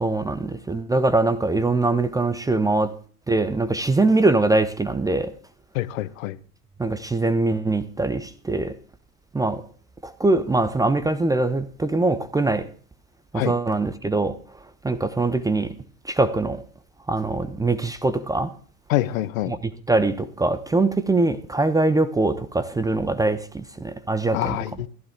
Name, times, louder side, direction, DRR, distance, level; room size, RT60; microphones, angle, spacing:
voice 1, 0.0-2.9 3.3-5.3 6.8-8.7 9.3-9.6 10.0-12.7 13.3-14.3 14.8-15.7 16.1-16.6 17.1-18.5 19.5-19.6 19.9-24.6, right 2 dB, 10° right, 0.7 m, -22 dB
voice 2, 5.7-6.4 13.3-13.5 18.9-19.5 24.3-24.9, left 15 dB, 60° left, 0.9 m, -25 dB
15.0 x 11.0 x 3.6 m
hypercardioid pair, 90°, 45 cm